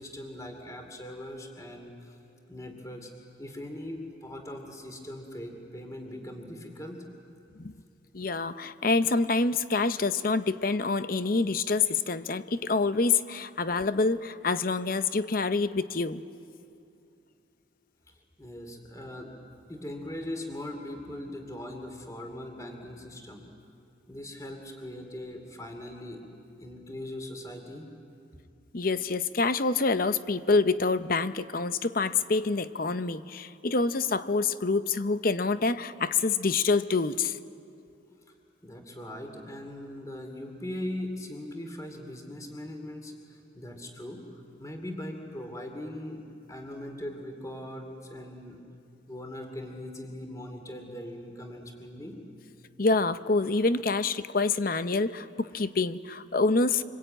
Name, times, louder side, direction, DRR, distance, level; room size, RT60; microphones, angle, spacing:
voice 1, 0.0-2.2 2.5-3.1 3.4-7.1 18.1-19.3 19.7-23.4 24.1-26.2 26.6-27.9 38.3-38.4 38.6-48.6 49.1-52.2, left 1 dB, 15° left, 4 dB, 2.5 m, -40 dB
voice 2, 8.1-16.2 28.7-37.4 52.8-56.8, left 3 dB, 45° left, 12 dB, 0.7 m, -26 dB
26.0 x 24.5 x 8.9 m, 2.6 s
head